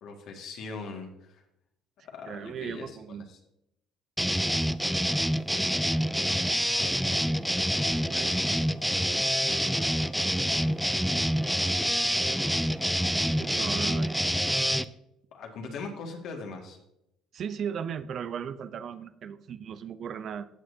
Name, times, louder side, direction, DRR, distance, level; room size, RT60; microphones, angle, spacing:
voice 1, 0.0-1.4 2.0-3.2 15.3-16.8, left 4 dB, 65° left, 2 dB, 2.0 m, -40 dB
voice 2, 2.3-3.3 7.1-8.3 13.4-14.2 17.3-20.5, right 7 dB, 55° right, 12 dB, 0.7 m, -37 dB
sound 1, 4.2-14.8, equal, ahead, 0.5 m, -27 dB
15.5 x 6.4 x 2.8 m, 0.80 s
supercardioid pair, 75°, 0 cm